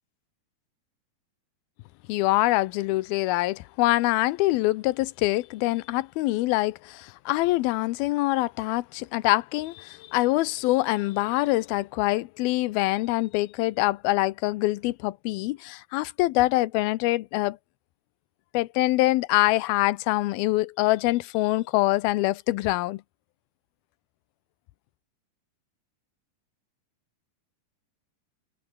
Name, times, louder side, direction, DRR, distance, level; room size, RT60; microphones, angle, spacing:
voice 1, 2.1-17.6 18.5-23.0, left 19 dB, 90° left, 2.6 m, -24 dB
omnidirectional pair, 4.3 m